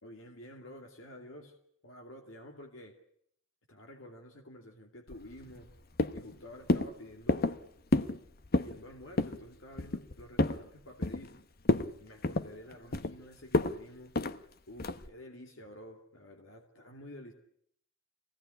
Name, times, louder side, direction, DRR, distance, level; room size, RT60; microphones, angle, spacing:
voice 1, 0.0-1.5 1.8-3.0 3.7-5.7 6.1-7.6 8.6-11.4 12.0-14.1 14.7-17.3, left 1 dB, 80° left, 2 dB, 2.6 m, -50 dB
sound 1, 5.1-5.7 6.0-6.3 6.7-6.9 7.3-7.6 7.9-8.2 8.4-8.8 9.2-9.4 9.8-10.6 11.0-11.4 11.6-11.9 12.2-13.1 13.5-13.7 14.1-14.4 14.8-15.1, left 2 dB, 50° left, 1.0 m, -29 dB
24.5 x 17.5 x 10.0 m, 0.69 s
head